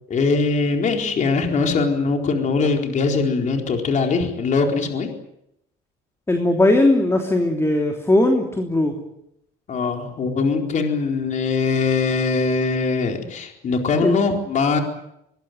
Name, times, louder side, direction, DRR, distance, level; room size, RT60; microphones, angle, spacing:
voice 1, 0.1-5.1 9.7-14.8, left 4 dB, 45° left, 3 dB, 4.3 m, -21 dB
voice 2, 6.3-8.9 14.0-14.2, left 1 dB, 15° left, 4 dB, 3.2 m, -18 dB
24.0 x 20.5 x 9.4 m, 0.80 s
cardioid pair, 110°, 17 cm